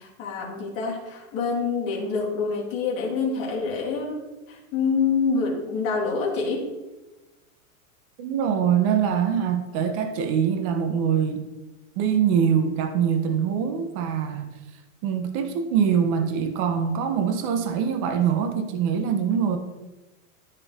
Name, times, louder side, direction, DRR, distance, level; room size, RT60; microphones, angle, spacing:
voice 1, 0.0-6.7, left 4 dB, 30° left, -2 dB, 2.2 m, -26 dB
voice 2, 8.2-11.5 12.0-14.5 15.0-19.6, right 7 dB, 25° right, 7 dB, 0.5 m, -23 dB
13.5 x 4.5 x 3.5 m, 1.1 s
supercardioid pair, 165°, 42 cm